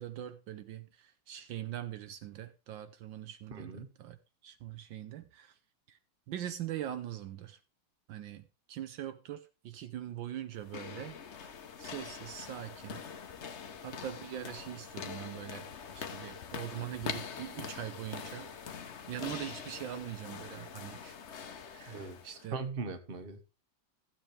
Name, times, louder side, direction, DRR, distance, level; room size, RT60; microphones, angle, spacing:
voice 1, 0.0-4.2 4.4-5.6 5.9-6.0 6.3-7.6 8.1-11.5 11.8-13.0 13.8-18.8 19.1-21.2 21.7-22.6, right 11 dB, 75° right, 1.4 m, -42 dB
voice 2, 3.5-3.9 21.9-22.2 22.5-23.5, right 4 dB, 30° right, 1.2 m, -39 dB
sound 1, 10.5-22.5, left 7 dB, 50° left, 0.9 m, -44 dB
15.0 x 7.7 x 3.3 m
omnidirectional pair, 2.2 m